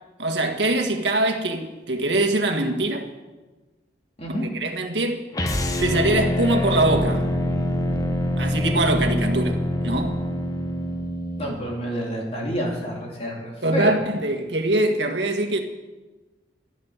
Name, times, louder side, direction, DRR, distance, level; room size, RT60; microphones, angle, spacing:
voice 1, 0.2-3.1 4.3-5.2 5.8-7.3 8.4-10.2 13.6-15.6, right 2 dB, 75° right, 1.8 m, -23 dB
sound 1, 5.3-11.5, left 1 dB, 20° left, 1.0 m, -25 dB
sound 2, 6.6-11.0, left 1 dB, 70° left, 5.2 m, -39 dB
voice 2, 11.4-14.0, equal, 35° left, 3.4 m, -28 dB
13.0 x 12.0 x 7.4 m
head